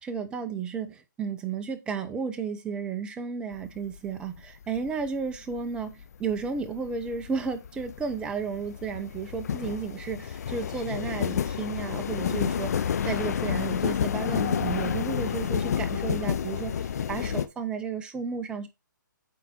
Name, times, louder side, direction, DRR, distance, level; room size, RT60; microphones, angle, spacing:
voice 1, 0.0-18.7, right 5 dB, 10° right, 0.7 m, -33 dB
sound 1, 3.5-4.0 4.4-17.5, left 8 dB, 55° left, 0.6 m, -30 dB
8.4 x 4.1 x 4.2 m
hypercardioid pair, 150°, 11 cm